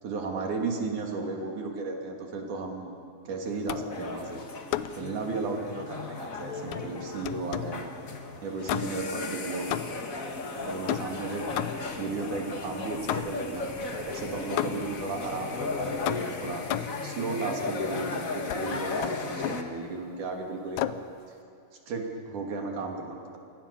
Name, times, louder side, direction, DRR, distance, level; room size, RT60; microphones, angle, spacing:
voice 1, 0.0-2.9 3.2-4.4 4.9-7.9 8.4-10.0 10.6-11.5 12.0-16.6 17.0-21.0 21.9-23.4, right 3 dB, 75° right, 1 dB, 4.4 m, -34 dB
sound 1, 3.7-4.0 4.7-5.1 6.7-7.8 8.7-9.2 9.7-10.2 10.9-12.0 13.1-13.6 14.6-15.0 16.1-17.1 18.5-18.7 19.0-19.7 20.8-21.1, left 13 dB, 75° left, 2.1 m, -33 dB
sound 2, 3.9-19.6, left 3 dB, 35° left, 1.6 m, -36 dB
sound 3, 10.6-16.9, left 8 dB, 60° left, 1.6 m, -47 dB
28.0 x 23.0 x 7.0 m, 2.6 s
omnidirectional pair, 3.5 m